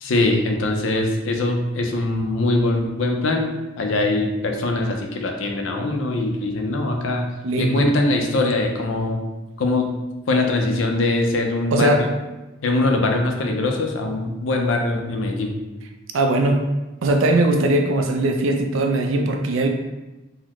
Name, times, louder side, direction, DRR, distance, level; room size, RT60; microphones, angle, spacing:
voice 1, 0.0-7.3 7.6-9.2 9.6-9.9 10.3-11.9 12.6-15.5, left 2 dB, 70° left, 3 dB, 0.5 m, -22 dB
voice 2, 7.4-7.9 11.7-12.1 16.1-16.7 17.0-19.7, right 2 dB, 80° right, 4 dB, 0.4 m, -20 dB
3.9 x 2.0 x 3.0 m, 1.1 s
head